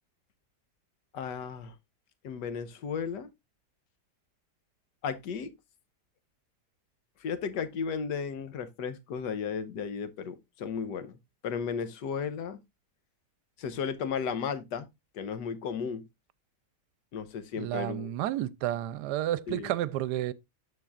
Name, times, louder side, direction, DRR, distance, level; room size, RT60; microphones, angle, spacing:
voice 1, 1.1-1.7 2.2-3.3 5.0-5.5 7.2-11.2 11.4-12.6 13.6-14.9 15.1-16.0 17.1-18.1 19.5-19.7, left 6 dB, 85° left, 1.5 m, -34 dB
voice 2, 17.6-20.3, right 13 dB, 80° right, 1.2 m, -31 dB
13.5 x 4.5 x 2.4 m
omnidirectional pair, 1.8 m